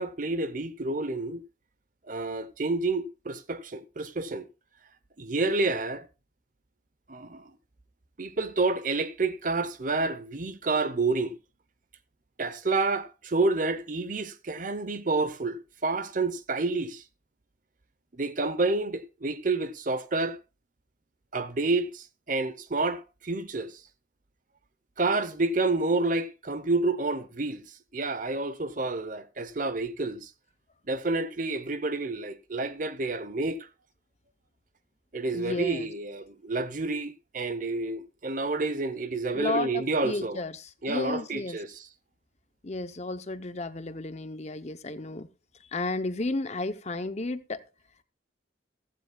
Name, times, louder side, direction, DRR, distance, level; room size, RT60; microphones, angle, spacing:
voice 1, 0.0-1.4 2.1-4.4 5.2-6.1 7.1-7.5 8.2-11.4 12.4-17.0 18.2-20.4 21.3-23.8 25.0-27.6 27.9-30.3 30.9-33.7 35.1-40.4 40.8-41.8, right 3 dB, 40° right, 0.8 m, -29 dB
voice 2, 35.3-35.9 39.3-41.6 42.6-45.3 45.6-47.6, left 2 dB, 35° left, 0.7 m, -33 dB
15.0 x 14.5 x 2.3 m
head